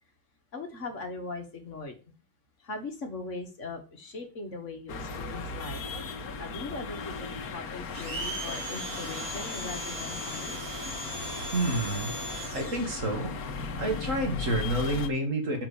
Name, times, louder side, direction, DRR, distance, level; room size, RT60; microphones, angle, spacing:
voice 1, 0.5-2.1 2.6-5.8 6.4-10.6, left 3 dB, 55° left, 4 dB, 1.8 m, -40 dB
sound 1, 4.9-15.1, left 4 dB, 80° left, 1.5 m, -37 dB
Domestic sounds home sounds, 7.9-13.0, right 1 dB, 75° right, 2.6 m, -38 dB
voice 2, 11.5-12.1 12.5-13.4 13.8-15.7, right 1 dB, 60° right, 2 dB, 2.5 m, -29 dB
6.0 x 5.9 x 6.9 m, 0.34 s
omnidirectional pair, 1.5 m